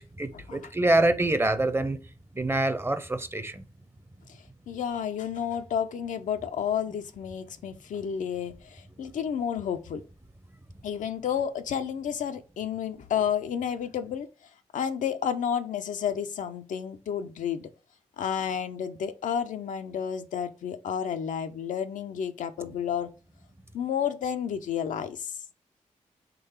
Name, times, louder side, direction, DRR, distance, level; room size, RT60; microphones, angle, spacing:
voice 1, 0.0-2.0 2.3-3.6, right 2 dB, 20° right, 0.6 m, -25 dB
voice 2, 4.7-10.0 10.8-14.3 14.7-17.7 18.2-23.1 23.7-25.3, left 8 dB, 85° left, 0.5 m, -31 dB
3.8 x 3.1 x 4.3 m
cardioid pair, 50°, 13 cm